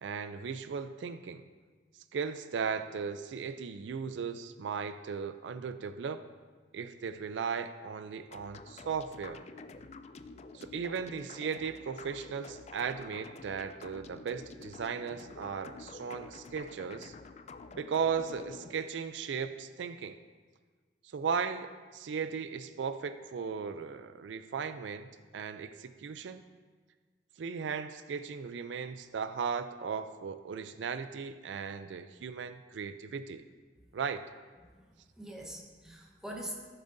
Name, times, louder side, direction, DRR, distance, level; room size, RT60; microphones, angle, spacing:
voice 1, 0.0-1.5 2.1-6.2 6.7-9.4 10.5-17.1 17.7-20.2 21.1-26.4 27.4-33.4 33.9-34.2, right 6 dB, 80° right, 11 dB, 0.4 m, -37 dB
sound 1, 8.3-18.8, left 4 dB, 35° left, 0.3 m, -49 dB
voice 2, 34.6-36.5, right 1 dB, 5° right, -1 dB, 1.0 m, -44 dB
14.0 x 7.0 x 2.6 m, 1.4 s
head